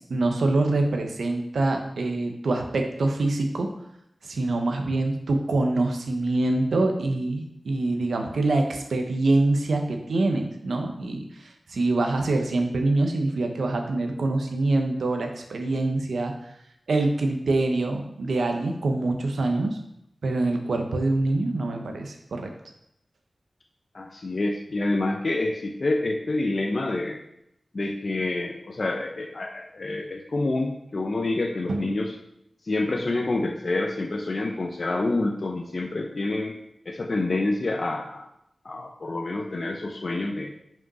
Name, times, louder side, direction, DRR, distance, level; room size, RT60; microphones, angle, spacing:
voice 1, 0.0-3.7 4.2-16.3 16.9-19.8 20.2-22.5 31.7-31.8, right 2 dB, 90° right, 4 dB, 1.0 m, -25 dB
voice 2, 23.9-27.2 27.7-32.1 32.6-36.5 36.9-38.3 38.6-40.5, left 2 dB, 60° left, 2 dB, 0.7 m, -27 dB
5.9 x 5.2 x 5.4 m, 0.79 s
cardioid pair, 45°, 0 cm